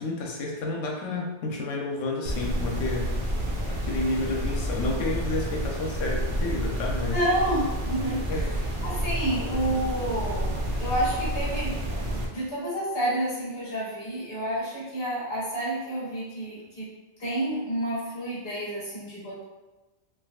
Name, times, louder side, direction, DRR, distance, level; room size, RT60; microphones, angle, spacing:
voice 1, 0.0-3.1 3.7-7.2 8.3-8.5, left 2 dB, 85° left, 0 dB, 1.0 m, -30 dB
sound 1, 2.2-12.3, equal, 55° right, 0.7 m, -29 dB
voice 2, 7.1-8.4 8.8-16.9 17.2-19.4, right 1 dB, 50° left, -9 dB, 1.5 m, -29 dB
3.5 x 2.2 x 2.3 m, 1.1 s
omnidirectional pair, 1.3 m